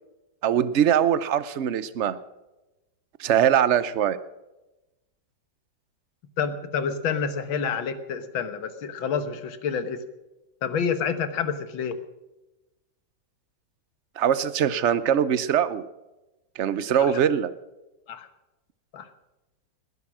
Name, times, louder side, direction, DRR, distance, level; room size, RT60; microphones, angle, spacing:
voice 1, 0.4-2.2 3.2-4.2 14.2-15.8 16.6-17.5, right 9 dB, 65° right, 15 dB, 0.7 m, -22 dB
voice 2, 6.4-10.0 10.6-12.0 17.0-17.1 18.1-18.3 18.9-19.1, left 6 dB, 85° left, 10 dB, 2.0 m, -28 dB
19.5 x 11.0 x 6.1 m, 1.0 s
omnidirectional pair, 2.1 m